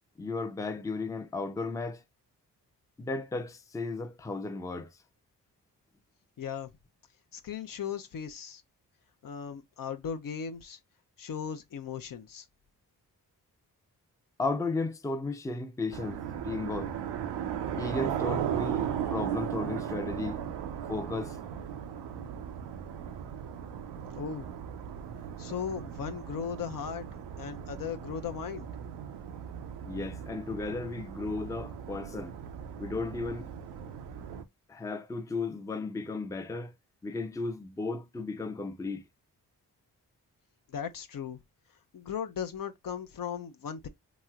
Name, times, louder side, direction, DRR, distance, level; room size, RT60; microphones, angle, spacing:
voice 1, 0.2-2.0 3.0-4.9 14.4-16.9 17.8-20.4 20.9-21.4 29.9-32.3 32.8-33.5 34.7-36.7 37.0-39.0, left 3 dB, 10° left, 0.5 m, -34 dB
voice 2, 6.4-6.7 7.3-8.6 9.2-10.8 11.2-12.4 24.1-24.5 25.4-27.0 27.4-28.7 40.7-41.4 41.9-43.9, left 7 dB, 55° left, 0.6 m, -37 dB
sound 1, 15.9-34.4, right 9 dB, 85° right, 0.5 m, -37 dB
3.0 x 2.8 x 2.2 m
supercardioid pair, 45°, 40 cm